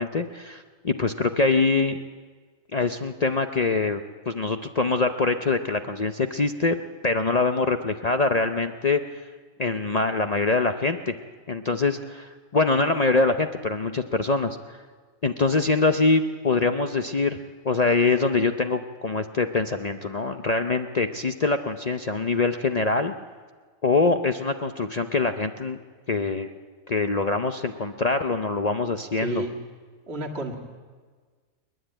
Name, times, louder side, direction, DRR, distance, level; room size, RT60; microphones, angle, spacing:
voice 1, 0.0-2.0 2.7-6.8 7.0-9.2 9.6-11.1 11.5-14.8 15.2-17.4 17.6-23.1 23.8-25.8 26.1-26.5 26.9-29.4, left 3 dB, 40° left, 7 dB, 0.6 m, -24 dB
voice 2, 29.2-29.5 30.1-30.5, right 2 dB, 50° right, 1 dB, 2.2 m, -31 dB
29.0 x 10.5 x 8.8 m, 1.5 s
omnidirectional pair, 1.4 m